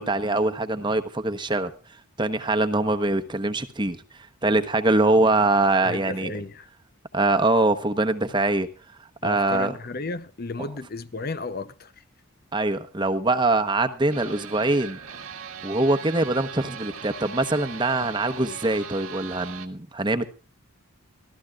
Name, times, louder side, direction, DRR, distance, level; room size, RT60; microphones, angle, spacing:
voice 1, 0.0-1.7 2.2-4.0 4.4-6.3 7.1-8.7 9.2-9.7 12.5-15.0 15.6-20.3, right 2 dB, 20° right, 1.0 m, -23 dB
voice 2, 5.8-6.7 9.2-11.9, left 3 dB, 45° left, 0.7 m, -33 dB
sound 1, 14.1-19.7, right 7 dB, 85° right, 1.7 m, -39 dB
24.5 x 14.5 x 2.4 m
head